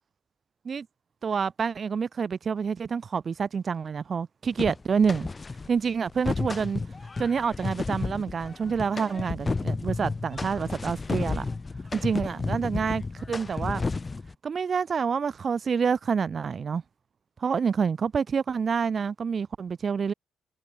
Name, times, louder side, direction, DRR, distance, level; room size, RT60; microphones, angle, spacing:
voice 1, 1.2-5.3 5.7-6.8 7.2-11.5 11.9-13.8 14.4-16.8 17.4-20.1, right 6 dB, 45° right, 0.8 m, -27 dB
sound 1, 4.6-5.7 6.1-14.3, left 3 dB, 25° left, 1.5 m, -32 dB
cardioid pair, 90°, 0 cm